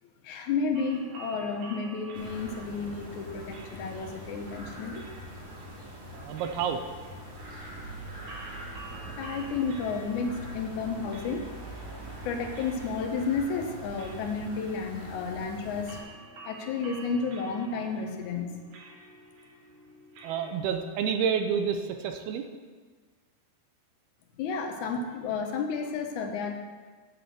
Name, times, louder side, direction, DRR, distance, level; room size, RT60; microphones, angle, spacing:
voice 1, 0.2-5.1 9.2-11.5 12.2-16.0 16.4-18.6 24.4-26.6, left 5 dB, 70° left, 3 dB, 1.9 m, -32 dB
sound 1, 0.7-20.6, right 2 dB, 60° right, 2.4 m, -50 dB
sound 2, 2.1-16.0, right 1 dB, 40° right, 3.3 m, -43 dB
voice 2, 6.1-6.8 9.1-9.2 20.2-22.5, right 7 dB, 85° right, 6 dB, 2.6 m, -29 dB
8.8 x 7.0 x 7.7 m, 1.4 s
omnidirectional pair, 4.7 m